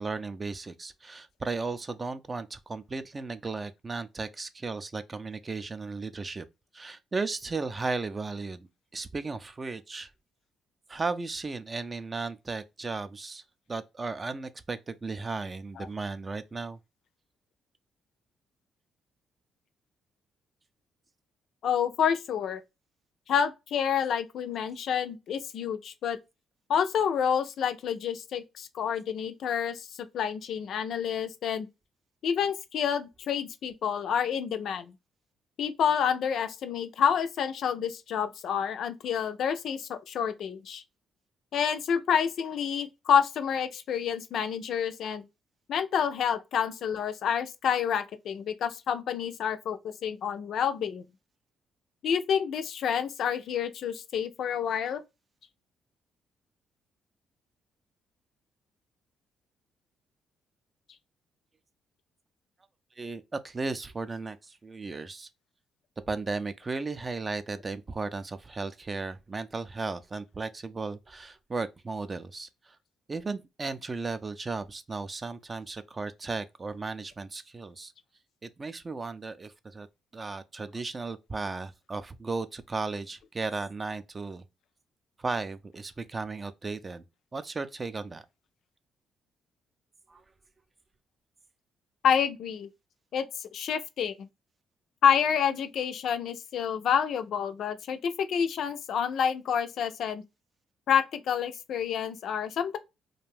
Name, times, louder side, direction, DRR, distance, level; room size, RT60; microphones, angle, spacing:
voice 1, 0.0-6.4 6.7-10.1 10.9-13.4 13.7-16.8 63.0-65.3 66.1-72.8 73.1-77.9 78.4-79.9 80.1-84.4 85.2-87.1 87.3-88.3 90.1-90.2, right 3 dB, 30° right, 0.3 m, -35 dB
voice 2, 21.6-22.6 23.3-26.2 26.7-29.9 30.1-31.7 32.2-34.9 35.6-40.8 41.5-45.2 45.7-51.0 52.0-55.0 92.0-92.7 93.1-93.3 93.5-94.3 95.0-100.2 100.9-102.8, left 8 dB, 70° left, 0.3 m, -28 dB
2.5 x 2.2 x 3.2 m
cardioid pair, 90°, 0 cm